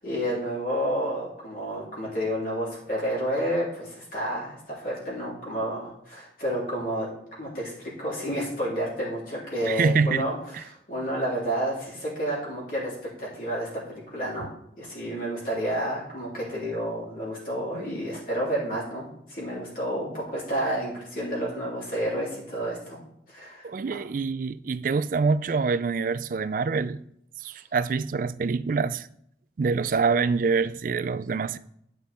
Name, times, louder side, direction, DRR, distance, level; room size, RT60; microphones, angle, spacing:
voice 1, 0.0-7.1 7.4-14.5 14.8-23.0 23.3-24.0, equal, 50° left, 3.3 m, -30 dB
voice 2, 9.7-10.3 23.6-27.0 27.4-29.1 29.6-31.6, right 4 dB, 50° right, 0.3 m, -25 dB
10.0 x 5.4 x 4.3 m
head